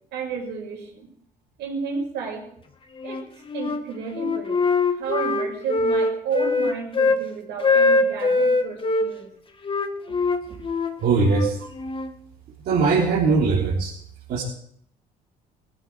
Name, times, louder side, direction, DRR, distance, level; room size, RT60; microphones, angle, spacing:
voice 1, 0.1-1.1 1.6-2.5 3.0-4.6 4.9-9.3 10.1-10.2 11.6-11.7, right 6 dB, 80° right, 0 dB, 6.1 m, -32 dB
Wind instrument woodwind instrument, 3.0-3.8 4.2-7.2 7.6-9.1 9.6-12.1, left 3 dB, 30° left, 1.8 m, -22 dB
voice 2, 11.0-11.6 12.7-13.9 14.3-14.4, right 4 dB, 65° right, -5 dB, 3.9 m, -20 dB
19.0 x 14.5 x 4.8 m, 0.66 s
cardioid pair, 110°, 17 cm